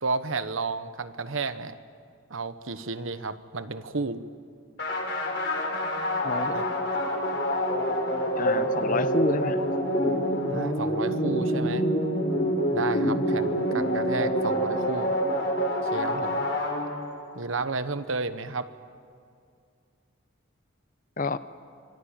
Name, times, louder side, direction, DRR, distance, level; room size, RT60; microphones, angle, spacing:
voice 1, 0.0-1.8 2.3-4.2 6.5-6.7 10.5-11.9 12.7-15.2 15.9-16.5 17.3-18.7, right 3 dB, 75° right, 12 dB, 1.1 m, -32 dB
sound 1, 4.8-17.3, equal, 55° left, 5.1 m, -26 dB
voice 2, 6.2-6.6 8.3-9.6 21.2-21.4, left 3 dB, 40° left, 13 dB, 0.7 m, -28 dB
26.0 x 21.5 x 8.9 m, 2.3 s
head